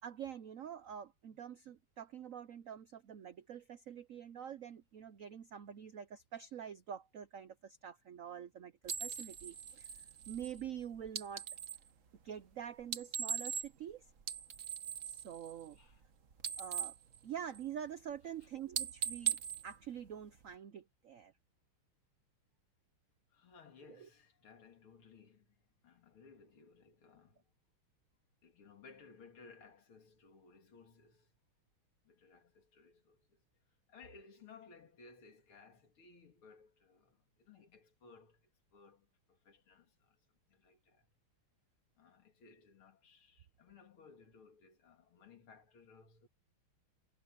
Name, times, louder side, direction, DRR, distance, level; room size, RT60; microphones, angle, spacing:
voice 1, 0.0-9.9 10.3-11.4 12.2-14.0 15.1-15.8 16.6-16.9 17.2-19.4 19.6-21.3 23.9-24.1, right 9 dB, 80° right, 0.7 m, -46 dB
sound 1, 8.8-11.9 12.8-13.9 14.2-16.1 16.3-17.9 18.2-18.4 18.7-20.5, right 8 dB, 45° right, 1.3 m, -40 dB
voice 2, 23.3-25.5 25.8-27.4 28.4-31.3 32.0-33.4 33.9-40.2 40.5-41.1 42.0-46.3, left 5 dB, 80° left, 3.3 m, -60 dB
omnidirectional pair, 2.3 m